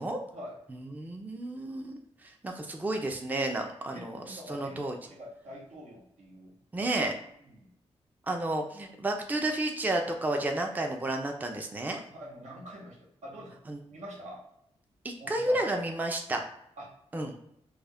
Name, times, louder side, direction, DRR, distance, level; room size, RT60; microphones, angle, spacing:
voice 1, 0.7-2.0 2.4-5.0 6.7-7.1 8.3-12.0 13.7-13.8 15.0-16.4 17.1-17.3, right 1 dB, 15° right, 3 dB, 0.4 m, -31 dB
voice 2, 3.9-6.5 7.4-7.7 12.1-13.6 13.9-14.4 15.2-15.6 16.8-16.9, equal, 80° right, -3 dB, 0.9 m, -45 dB
2.3 x 2.1 x 3.4 m, 0.76 s
cardioid pair, 60°, 12 cm